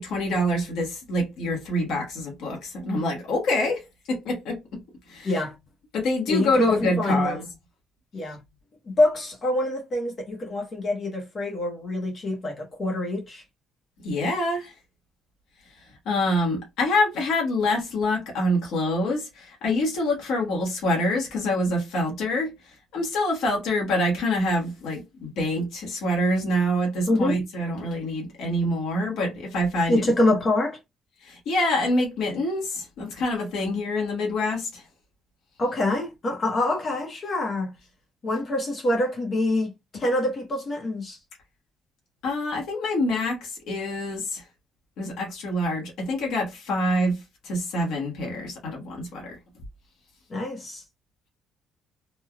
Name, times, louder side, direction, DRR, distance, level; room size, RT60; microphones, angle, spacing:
voice 1, 0.0-4.8 5.1-5.4 5.9-7.4 14.0-14.7 16.0-22.5 22.9-30.0 31.2-34.8 42.2-44.4 45.0-49.4, left 1 dB, 75° left, 1.0 m, -26 dB
voice 2, 6.3-7.4 8.1-8.4 8.9-13.4 27.1-27.4 29.9-30.8 35.6-37.7 38.2-41.2 50.3-50.8, left 1 dB, 35° left, 0.9 m, -25 dB
3.2 x 2.2 x 2.3 m
cardioid pair, 130°, 0 cm